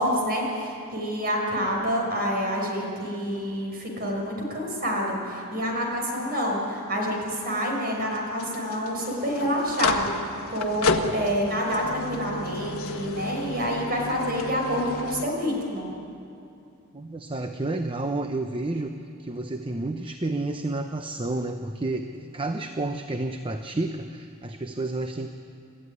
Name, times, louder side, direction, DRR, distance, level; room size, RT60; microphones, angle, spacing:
voice 1, 0.0-15.9, equal, 45° right, 0 dB, 5.9 m, -27 dB
sound 1, 5.5-15.3, left 3 dB, 75° left, 1.5 m, -33 dB
voice 2, 16.9-18.9 19.2-25.3, right 2 dB, 25° right, 6 dB, 0.8 m, -30 dB
28.5 x 14.0 x 9.8 m, 2.6 s
head